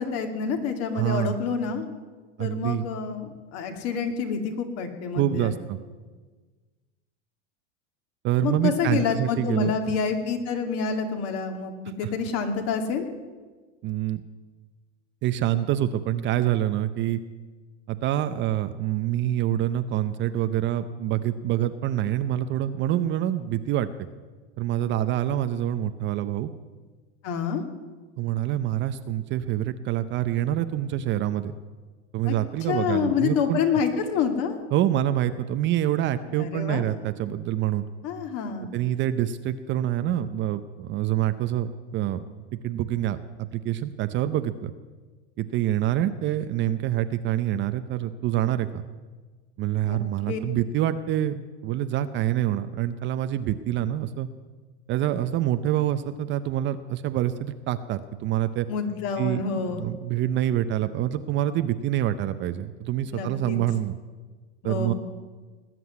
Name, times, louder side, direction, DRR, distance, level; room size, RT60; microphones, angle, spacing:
voice 1, 0.0-1.8 2.4-5.5 8.4-13.1 27.2-27.6 32.3-32.4 32.7-34.6 36.3-36.8 38.0-38.7 49.8-50.0 50.3-50.4 58.7-59.8 63.1-63.6 64.6-64.9, left 6 dB, 45° left, 6 dB, 2.3 m, -27 dB
voice 2, 0.9-1.4 2.4-2.8 5.1-5.8 8.2-9.7 12.0-12.1 13.8-14.2 15.2-17.2 17.9-23.9 24.6-26.5 28.2-31.5 32.1-33.6 34.7-37.8 38.7-44.7 45.4-48.9 49.6-54.3 54.9-58.7 59.2-64.0 64.6-64.9, right 12 dB, 30° right, 11 dB, 0.6 m, -26 dB
19.5 x 7.8 x 9.5 m, 1.4 s
supercardioid pair, 135°, 35 cm